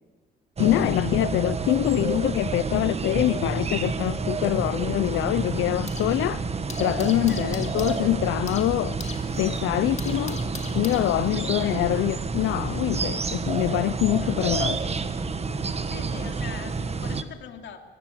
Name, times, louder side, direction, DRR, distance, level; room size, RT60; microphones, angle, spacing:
voice 1, 0.6-6.4 6.8-9.0 9.4-10.4 10.7-14.9, left 15 dB, 85° left, 0.6 m, -25 dB
sound 1, 0.6-17.2, right 4 dB, 30° right, 1.5 m, -29 dB
sound 2, 4.1-6.2 6.5-11.5, left 4 dB, 35° left, 2.7 m, -42 dB
voice 2, 11.1-12.1 14.2-14.6 15.8-17.8, left 8 dB, 70° left, 3.0 m, -42 dB
23.5 x 19.0 x 7.7 m
cardioid pair, 90°, 20 cm